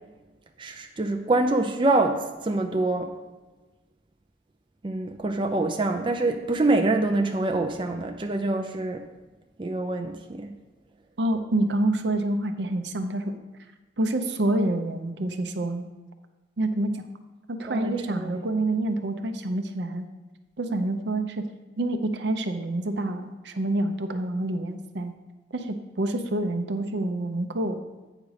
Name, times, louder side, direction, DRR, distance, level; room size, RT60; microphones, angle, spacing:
voice 1, 0.6-3.1 4.8-9.0 9.6-10.5 17.7-18.4, right 2 dB, 30° right, 3 dB, 0.5 m, -25 dB
voice 2, 11.2-13.3 14.0-15.8 16.6-17.1 17.5-20.1 20.6-21.4 21.8-25.1 25.5-27.8, right 1 dB, 70° right, 7 dB, 0.6 m, -27 dB
8.2 x 5.1 x 4.9 m, 1.2 s
head